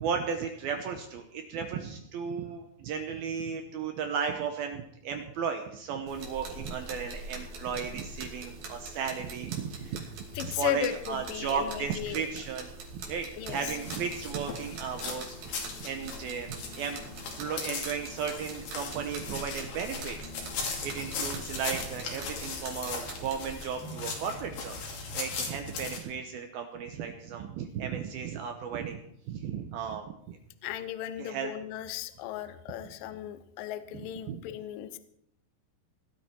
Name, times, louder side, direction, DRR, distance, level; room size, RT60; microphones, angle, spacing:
voice 1, 0.0-10.1 10.4-15.4 15.8-17.0 17.4-20.2 20.8-24.8 25.1-29.0 29.3-30.4 31.2-31.5 34.3-34.4, right 6 dB, 75° right, 5 dB, 2.4 m, -35 dB
sound 1, 6.1-23.5, right 2 dB, 55° right, 3.9 m, -44 dB
voice 2, 10.3-12.3 13.3-13.7 30.6-35.0, left 11 dB, 80° left, 11 dB, 2.0 m, -35 dB
sound 2, 13.5-26.0, left 4 dB, 60° left, 4.3 m, -38 dB
18.5 x 12.5 x 4.5 m, 0.70 s
omnidirectional pair, 5.4 m